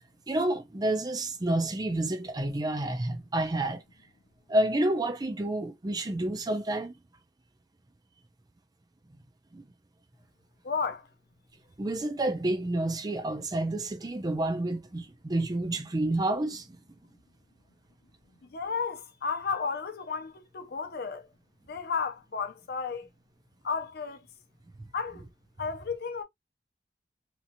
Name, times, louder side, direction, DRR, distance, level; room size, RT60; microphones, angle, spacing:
voice 1, 0.3-3.8 4.5-7.0 9.5-9.7 11.8-16.8, right 1 dB, 20° right, 0.5 m, -29 dB
voice 2, 10.6-11.1 18.5-21.3 21.7-23.1 23.6-24.2 24.9-25.3 25.6-26.2, left 5 dB, 60° left, 0.6 m, -33 dB
2.9 x 2.8 x 2.5 m
head